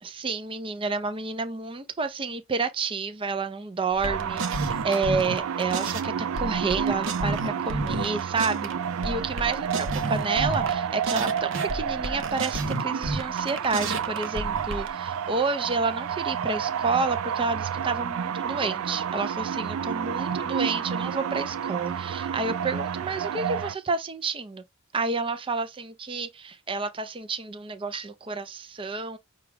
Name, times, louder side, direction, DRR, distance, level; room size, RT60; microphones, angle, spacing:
voice 1, 0.0-8.7 9.0-24.6 24.9-29.2, right 4 dB, 25° right, 0.5 m, -30 dB
sound 1, 3.9-6.1 6.4-8.7 9.0-10.7 11.0-14.9, right 2 dB, 65° right, 0.8 m, -31 dB
sound 2, 4.0-23.7, right 7 dB, 80° right, 0.4 m, -30 dB
5.9 x 2.3 x 3.3 m
head